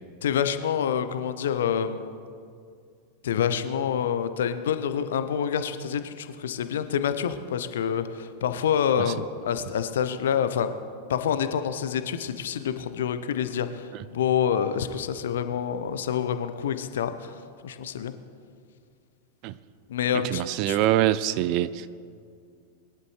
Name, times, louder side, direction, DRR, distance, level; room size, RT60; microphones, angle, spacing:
voice 1, 0.2-2.1 3.2-10.7 11.1-17.3 17.6-18.1 19.9-20.8, left 8 dB, 60° left, 11 dB, 0.8 m, -27 dB
voice 2, 20.2-21.9, right 13 dB, 40° right, 16 dB, 0.5 m, -24 dB
22.0 x 11.0 x 3.2 m, 2.2 s
figure-of-eight pair, 90°, 0 cm